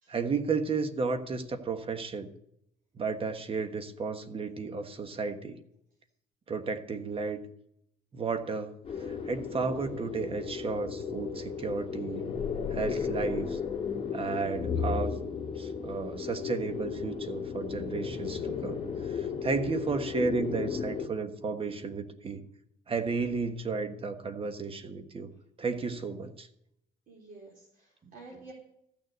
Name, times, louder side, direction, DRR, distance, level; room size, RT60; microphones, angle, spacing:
voice 1, 0.1-2.3 2.9-5.6 6.5-7.4 8.1-8.7 9.0-12.3 12.7-13.6 14.1-15.2 15.6-22.4 22.9-25.3 25.6-26.5, right 4 dB, 35° right, 9 dB, 1.4 m, -33 dB
sound 1, 8.8-21.1, left 6 dB, 35° left, 2.3 m, -34 dB
voice 2, 27.1-28.5, right 3 dB, 55° right, -3 dB, 4.1 m, -50 dB
14.0 x 6.8 x 8.0 m, 0.75 s
cardioid pair, 110°, 17 cm